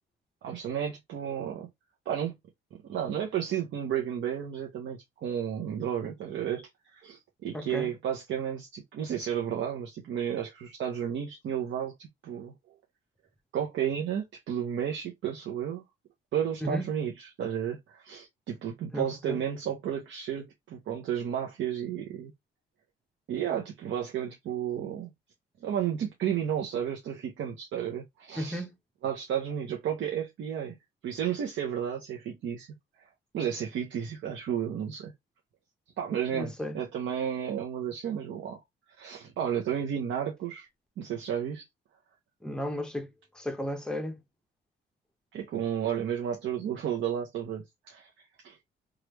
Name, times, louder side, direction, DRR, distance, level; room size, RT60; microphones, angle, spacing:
voice 1, 0.4-1.7 2.1-2.4 2.9-12.5 13.5-15.8 16.3-22.3 23.3-25.1 25.6-28.6 29.0-30.8 31.0-32.7 33.3-35.1 36.0-38.6 39.0-40.7 41.0-41.7 45.3-48.1 48.4-48.6, right 9 dB, 70° right, 0.7 m, -32 dB
voice 2, 7.5-7.9 16.6-16.8 18.9-19.4 28.4-28.7 36.3-36.8 42.4-43.1 43.4-44.2, equal, 5° left, 0.7 m, -34 dB
3.2 x 2.4 x 3.0 m
cardioid pair, 90°, 20 cm